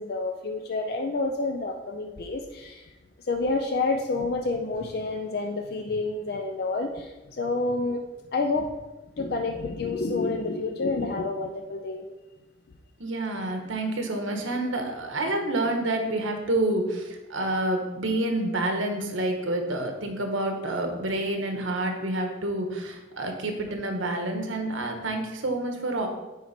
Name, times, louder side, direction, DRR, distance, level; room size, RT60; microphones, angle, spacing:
voice 1, 0.0-2.9 3.3-8.0 8.3-8.7 9.2-12.0, left 3 dB, 50° left, 4 dB, 0.5 m, -29 dB
voice 2, 13.0-26.1, right 1 dB, 85° right, 3 dB, 1.3 m, -28 dB
9.4 x 4.3 x 4.3 m, 1.1 s
head